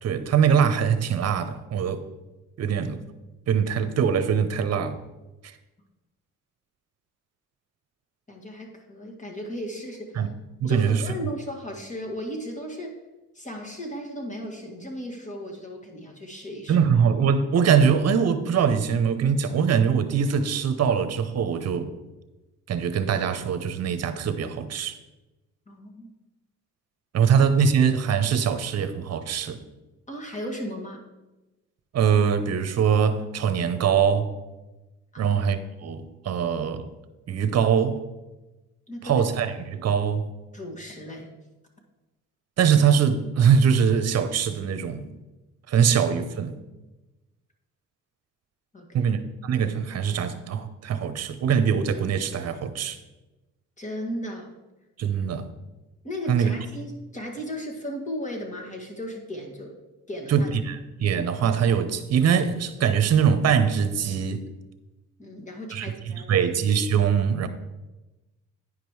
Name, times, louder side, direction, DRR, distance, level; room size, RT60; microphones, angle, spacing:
voice 1, 0.0-2.0 2.6-3.0 3.5-5.0 5.4-5.5 10.1-10.3 10.6-11.0 16.7-21.9 22.7-25.0 27.1-29.6 31.9-34.3 35.2-36.9 37.3-38.0 39.0-40.3 42.6-45.1 45.7-46.6 48.9-53.0 55.0-55.5 56.3-56.5 60.3-64.4 65.7-67.5, right 7 dB, 55° right, 0.9 m, -22 dB
voice 2, 8.3-10.2 10.7-12.9 13.3-16.9 25.7-26.1 30.1-31.0 35.1-35.4 38.9-39.3 40.5-41.3 48.7-49.0 53.8-54.5 56.0-59.8 60.1-60.5 65.2-66.5, equal, 25° left, 1.8 m, -36 dB
9.6 x 5.2 x 4.8 m
cardioid pair, 90°, 30 cm